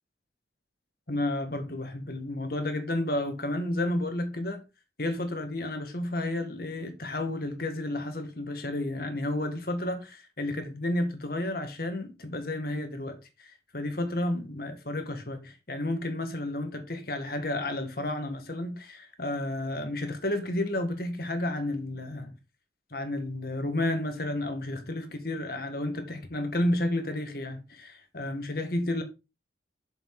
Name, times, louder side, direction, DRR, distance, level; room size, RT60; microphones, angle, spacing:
voice 1, 1.1-4.6 5.0-22.4 22.9-29.0, left 1 dB, 50° left, 1.8 m, -31 dB
7.7 x 6.9 x 3.8 m
head